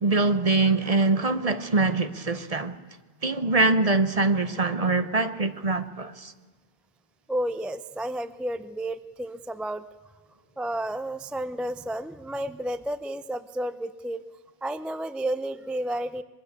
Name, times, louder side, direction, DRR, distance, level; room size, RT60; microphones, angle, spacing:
voice 1, 0.0-2.8 3.2-6.3, right 3 dB, 40° right, 1.0 m, -23 dB
voice 2, 7.3-9.8 10.6-14.2 14.6-16.2, right 1 dB, ahead, 0.5 m, -31 dB
24.0 x 22.0 x 6.7 m
omnidirectional pair, 1.0 m